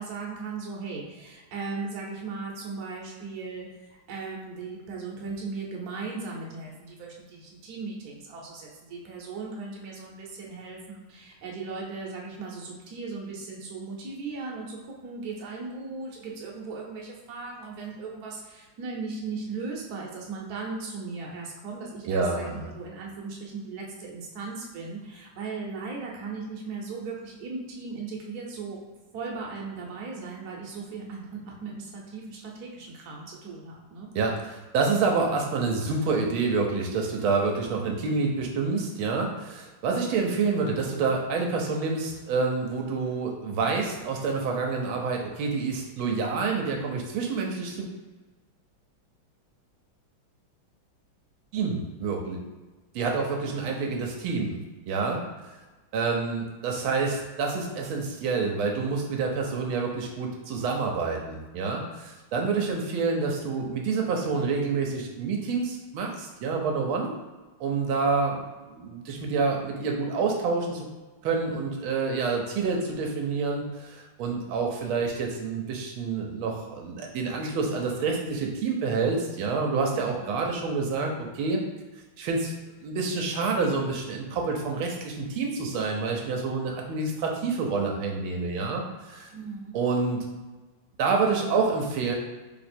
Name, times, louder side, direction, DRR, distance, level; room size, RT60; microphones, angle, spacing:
voice 1, 0.0-28.8 29.1-34.1 74.2-74.6 79.9-80.3 89.3-89.8, right 4 dB, 60° right, -2 dB, 1.2 m, -37 dB
voice 2, 22.1-22.7 34.1-47.9 51.5-52.4 52.9-55.2 55.9-67.1 67.6-68.4 68.7-70.9 71.2-81.6 82.2-82.5 82.8-89.3 89.7-90.2 91.0-92.1, right 4 dB, 80° right, 1 dB, 1.4 m, -28 dB
3.4 x 2.9 x 4.2 m, 1.2 s
omnidirectional pair, 2.2 m